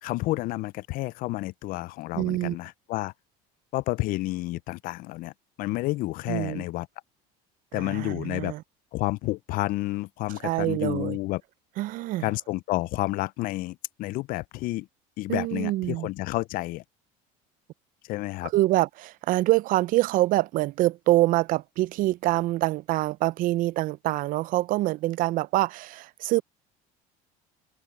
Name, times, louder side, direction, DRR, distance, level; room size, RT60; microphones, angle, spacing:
voice 1, 0.0-3.1 3.7-5.3 5.6-6.9 7.7-8.5 8.9-11.4 12.2-14.9 15.2-16.8 18.0-18.5, left 19 dB, 55° left, 0.4 m, -30 dB
voice 2, 2.1-2.6 6.3-6.6 7.7-8.6 10.3-11.2 11.8-12.3 15.3-16.1 18.4-26.4, right 17 dB, 50° right, 0.4 m, -25 dB
cardioid pair, 125°, 18 cm